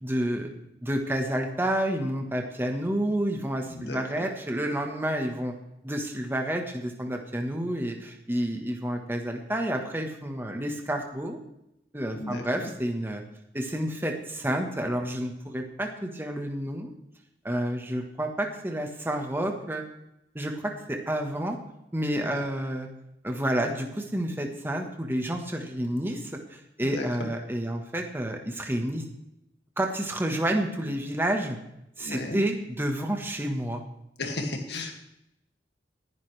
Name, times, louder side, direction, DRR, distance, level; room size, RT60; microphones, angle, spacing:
voice 1, 0.0-0.5 0.8-5.5 5.8-11.4 11.9-13.2 13.5-16.9 17.4-19.8 20.3-21.6 21.9-22.9 23.2-29.0 29.8-31.6 32.0-33.8, right 1 dB, 15° right, 3 dB, 1.3 m, -29 dB
voice 2, 3.7-4.2 12.1-12.7 22.1-22.4 26.8-27.1 32.0-32.4 34.2-34.9, left 2 dB, 70° left, 3 dB, 2.2 m, -35 dB
19.5 x 11.0 x 3.4 m, 0.83 s
head